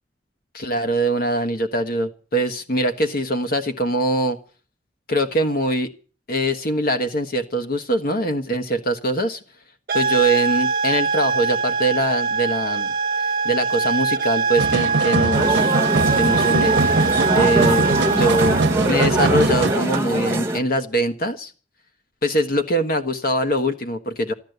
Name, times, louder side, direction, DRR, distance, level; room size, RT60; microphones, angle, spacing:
voice 1, 0.5-4.4 5.1-5.9 6.3-9.4 9.9-12.9 13.4-15.7 16.1-16.7 17.3-21.5 22.2-24.3, right 1 dB, 55° left, 7 dB, 1.4 m, -22 dB
sound 1, 9.9-18.8, right 5 dB, 55° right, 1.1 m, -22 dB
sound 2, 14.6-20.0, right 3 dB, 75° right, 0.9 m, -22 dB
sound 3, 15.3-20.6, right 2 dB, 15° right, 1.3 m, -23 dB
14.0 x 12.5 x 8.0 m, 0.39 s
head